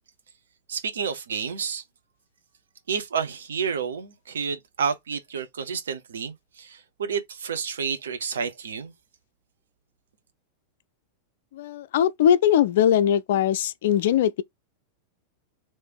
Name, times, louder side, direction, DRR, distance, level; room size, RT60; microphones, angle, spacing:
voice 1, 0.7-1.8 2.9-8.9, right 6 dB, 65° right, 0.9 m, -30 dB
voice 2, 11.5-14.4, left 10 dB, 55° left, 0.3 m, -21 dB
3.3 x 3.1 x 4.5 m
figure-of-eight pair, 90°, 0 cm